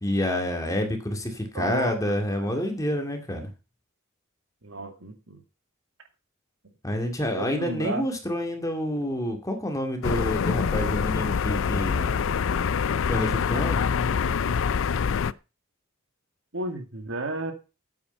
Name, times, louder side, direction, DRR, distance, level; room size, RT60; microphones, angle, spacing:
voice 1, 0.0-3.5 6.8-12.3 13.1-13.8, left 1 dB, 15° left, 4 dB, 2.2 m, -28 dB
voice 2, 1.5-2.6 4.6-5.4 7.4-8.0 16.5-17.5, right 2 dB, 65° right, 5 dB, 2.2 m, -33 dB
sound 1, 10.0-15.3, left 6 dB, 65° left, 0.4 m, -25 dB
8.8 x 8.7 x 5.5 m, 0.30 s
head